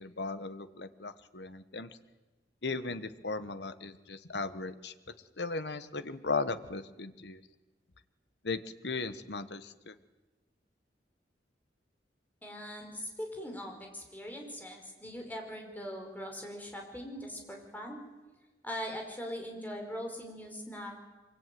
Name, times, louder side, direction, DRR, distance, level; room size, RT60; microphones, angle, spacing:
voice 1, 0.0-2.0 2.6-4.9 5.4-7.4 8.4-9.9, left 3 dB, 70° left, 11 dB, 1.4 m, -37 dB
voice 2, 12.4-18.0 18.6-21.0, equal, 10° left, 2 dB, 5.1 m, -41 dB
24.0 x 23.0 x 9.4 m, 1.2 s
head